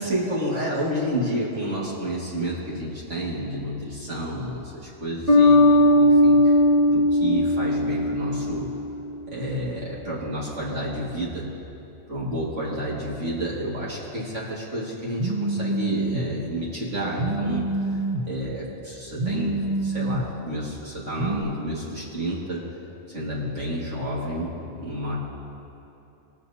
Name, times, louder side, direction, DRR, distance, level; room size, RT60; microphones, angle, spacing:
voice 1, 0.0-8.7 9.3-11.5 12.1-17.7 18.2-22.6 23.1-25.2, equal, 70° right, -6 dB, 2.4 m, -30 dB
Bass guitar, 5.3-8.8, left 1 dB, 10° right, 1.3 m, -18 dB
Telephone, 15.2-16.2 17.2-18.2 19.2-20.2 21.2-21.4, right 2 dB, 40° right, 0.9 m, -26 dB
20.0 x 7.2 x 2.8 m, 2.8 s
omnidirectional pair, 1.3 m